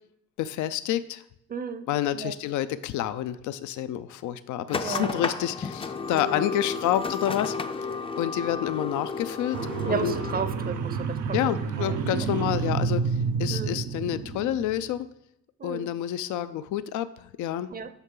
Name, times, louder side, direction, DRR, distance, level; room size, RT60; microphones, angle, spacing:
voice 1, 0.4-1.2 1.9-7.6 8.2-9.6 9.9-10.1 11.3-15.1 15.6-17.7, left 11 dB, 75° left, 13 dB, 0.4 m, -29 dB
voice 2, 1.5-2.4 4.8-5.2 6.1-6.4 9.8-12.0 13.5-13.8 15.6-15.9 17.7-17.9, right 5 dB, 30° right, 11 dB, 0.6 m, -34 dB
sound 1, 4.7-10.4, left 4 dB, 20° left, 0.4 m, -32 dB
sound 2, 9.5-14.8, right 5 dB, 85° right, 0.7 m, -29 dB
8.1 x 5.7 x 3.8 m, 0.78 s
cardioid pair, 90°, 30 cm